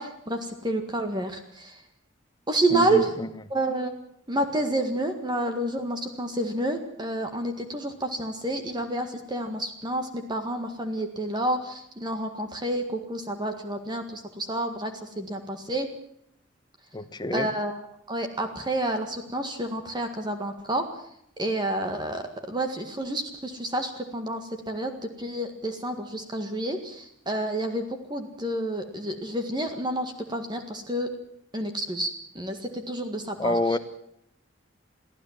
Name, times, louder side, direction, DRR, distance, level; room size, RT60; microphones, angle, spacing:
voice 1, 0.0-1.8 2.5-3.1 3.5-3.9 4.3-15.9 17.3-17.8 18.1-20.8 21.4-24.4 24.7-27.8 28.1-31.1 31.5-33.6, right 1 dB, 25° right, 6 dB, 1.8 m, -29 dB
voice 2, 2.7-3.3 16.9-17.5 33.4-33.8, left 1 dB, 20° left, 12 dB, 1.0 m, -27 dB
23.5 x 15.0 x 7.4 m, 0.73 s
head